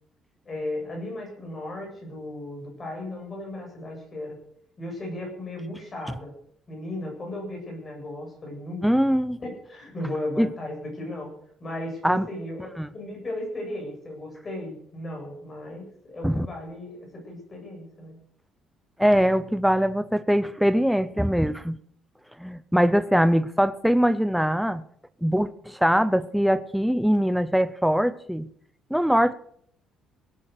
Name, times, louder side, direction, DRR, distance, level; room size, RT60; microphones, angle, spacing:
voice 1, 0.5-4.4 4.8-6.3 6.7-8.8 9.4-11.3 11.6-12.7 12.9-18.1, left 1 dB, 25° left, 1 dB, 7.6 m, -35 dB
voice 2, 8.8-9.4 10.4-10.5 12.0-12.2 12.8-12.9 16.2-16.5 19.0-21.8 22.4-24.8 25.2-28.5 28.9-29.3, equal, ahead, 13 dB, 0.6 m, -22 dB
17.5 x 10.0 x 6.6 m, 0.65 s
cardioid pair, 145°, 0 cm